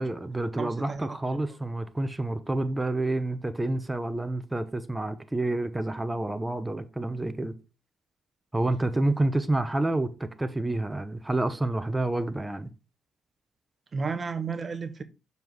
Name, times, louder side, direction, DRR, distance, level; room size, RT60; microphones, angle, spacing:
voice 1, 0.0-7.6 8.5-12.7, right 2 dB, 15° right, 0.8 m, -28 dB
voice 2, 0.6-1.1 13.9-15.0, right 5 dB, 40° right, 0.9 m, -32 dB
7.0 x 4.0 x 4.6 m
hypercardioid pair, 50°, 0 cm